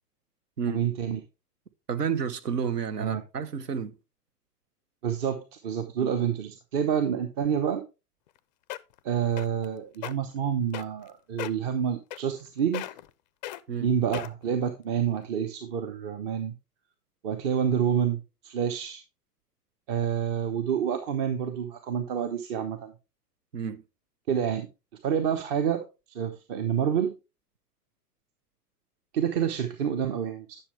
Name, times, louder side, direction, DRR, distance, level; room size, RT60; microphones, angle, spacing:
voice 1, 0.7-1.2 3.0-3.2 5.0-7.8 9.0-12.8 13.8-16.5 17.2-19.0 19.9-22.9 24.3-24.7 25.0-27.1 29.1-30.6, right 8 dB, 40° right, 1.0 m, -28 dB
voice 2, 1.9-3.9 6.0-6.1 13.7-13.9 23.5-23.8, right 7 dB, 75° right, 1.1 m, -30 dB
sound 1, 8.3-8.4 8.7-9.0 9.4-9.6 9.9-10.1 10.7-11.1 11.4-11.6 12.1-12.5 12.7-13.1 13.4-13.6 14.1-14.5 15.1-15.2, left 15 dB, 30° left, 0.4 m, -36 dB
10.0 x 6.5 x 3.2 m
figure-of-eight pair, 105°, 48 cm